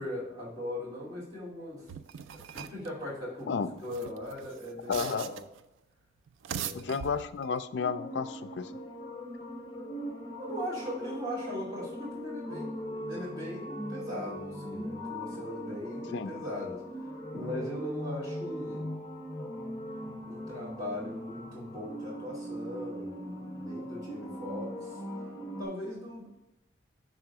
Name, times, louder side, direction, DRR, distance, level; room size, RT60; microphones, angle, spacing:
voice 1, 0.0-2.0 2.3-5.4 6.5-7.0 10.4-12.8 13.1-18.9 20.3-25.0 25.6-26.3, left 1 dB, 20° right, -8 dB, 2.4 m, -39 dB
sound 1, 1.9-2.9 3.8-5.6 6.3-7.6, right 8 dB, 85° right, 0.3 m, -41 dB
voice 2, 4.9-5.3 6.7-8.7 16.1-16.3, left 5 dB, 65° left, 11 dB, 0.4 m, -32 dB
sound 2, 7.7-25.7, equal, 20° left, 0.9 m, -40 dB
6.1 x 3.9 x 4.6 m, 0.96 s
head